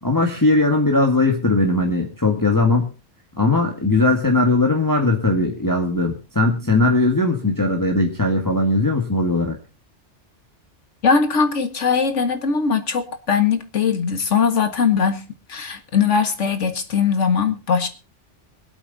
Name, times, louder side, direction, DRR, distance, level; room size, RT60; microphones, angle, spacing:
voice 1, 0.0-2.9 3.4-9.6, left 2 dB, 15° left, 1.9 m, -19 dB
voice 2, 11.0-15.2 15.5-17.9, left 6 dB, 75° left, 2.0 m, -20 dB
23.5 x 8.1 x 4.1 m
omnidirectional pair, 1.2 m